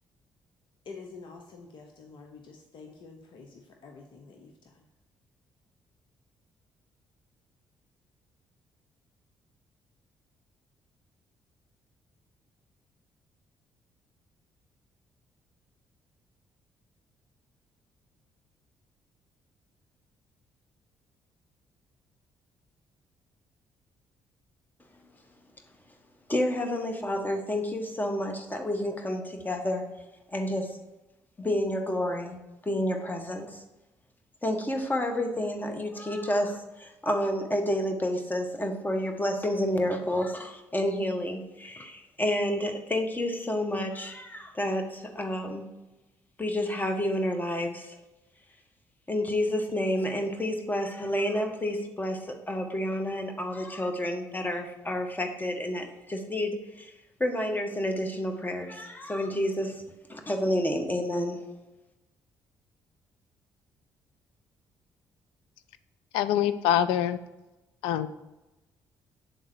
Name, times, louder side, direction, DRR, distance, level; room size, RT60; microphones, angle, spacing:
voice 1, 0.8-4.8, left 4 dB, 60° left, 2 dB, 0.8 m, -48 dB
voice 2, 26.3-29.9 30.3-30.8 31.4-33.6 34.4-45.6 46.4-47.9 49.1-56.9 57.2-59.8 60.1-61.4, left 1 dB, 20° left, 4 dB, 1.3 m, -30 dB
voice 3, 66.1-67.2 67.8-68.1, left 10 dB, 80° left, 13 dB, 0.4 m, -24 dB
7.7 x 3.6 x 4.7 m, 1.0 s
hypercardioid pair, 50°, 9 cm